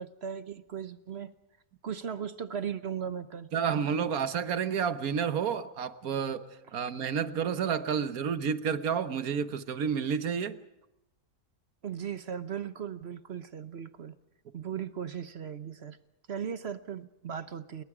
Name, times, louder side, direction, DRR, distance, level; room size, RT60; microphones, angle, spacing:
voice 1, 0.0-1.3 1.8-3.5 11.8-14.2 14.5-16.0 16.3-17.8, right 8 dB, 50° right, 12 dB, 1.1 m, -37 dB
voice 2, 3.5-10.6, right 7 dB, 70° right, 11 dB, 1.6 m, -30 dB
29.0 x 22.0 x 4.9 m, 0.91 s
omnidirectional pair, 1.6 m